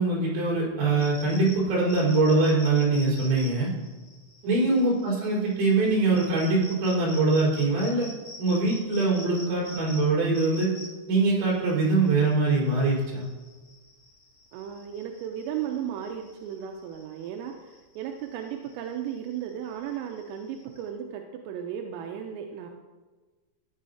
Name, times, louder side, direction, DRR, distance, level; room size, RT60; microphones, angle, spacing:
voice 1, 0.0-3.7 4.4-8.1 8.4-10.7 11.1-13.3, right 3 dB, 55° right, -6 dB, 6.4 m, -23 dB
sound 1, 1.0-20.9, left 2 dB, 30° left, 2.4 m, -47 dB
voice 2, 4.4-4.9 14.5-22.7, right 9 dB, 85° right, 2 dB, 3.5 m, -35 dB
15.5 x 11.0 x 2.8 m, 1.3 s
omnidirectional pair, 5.8 m